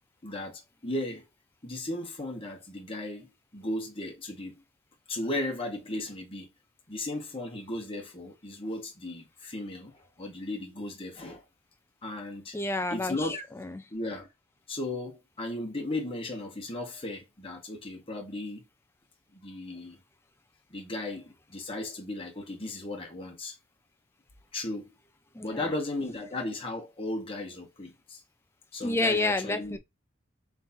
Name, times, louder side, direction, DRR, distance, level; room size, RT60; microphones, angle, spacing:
voice 1, 0.2-1.2 1.6-4.5 5.1-6.5 6.9-11.4 12.0-12.5 12.9-13.4 13.9-14.3 14.7-18.6 19.3-20.0 20.7-23.5 24.5-24.9 25.4-28.2 28.7-29.8, left 2 dB, 30° left, 1.4 m, -36 dB
voice 2, 12.5-13.8 25.3-25.7 28.8-29.8, left 2 dB, 15° left, 0.5 m, -30 dB
3.6 x 3.2 x 4.2 m
head